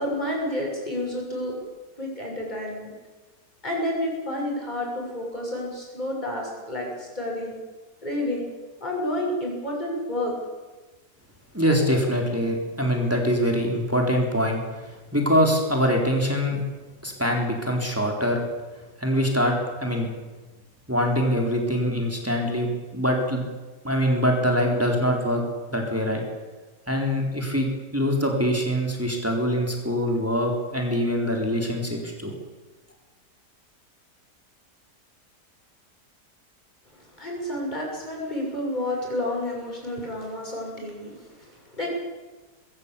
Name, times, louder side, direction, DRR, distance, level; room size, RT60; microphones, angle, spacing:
voice 1, 0.0-1.6 2.0-2.9 3.6-7.6 8.0-8.5 8.8-10.4 37.1-41.9, left 1 dB, 25° left, -1 dB, 7.1 m, -30 dB
voice 2, 11.5-14.6 15.1-16.6 17.0-18.4 19.0-20.1 20.9-23.4 23.8-26.2 26.9-32.4, equal, 10° right, 1 dB, 3.9 m, -24 dB
21.0 x 16.0 x 8.4 m, 1.2 s
omnidirectional pair, 1.8 m